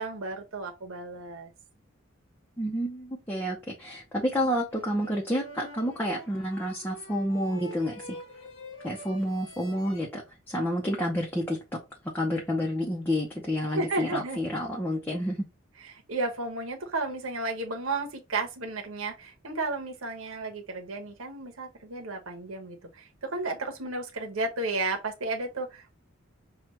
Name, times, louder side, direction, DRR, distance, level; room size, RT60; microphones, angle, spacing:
voice 1, 0.0-1.5 13.7-14.4 15.8-26.0, right 2 dB, 85° right, 1.0 m, -33 dB
voice 2, 2.6-8.2 8.8-11.6 12.1-15.4, equal, 10° left, 0.7 m, -29 dB
sound 1, 4.7-10.0, left 1 dB, 80° left, 1.1 m, -46 dB
5.9 x 2.3 x 3.1 m
head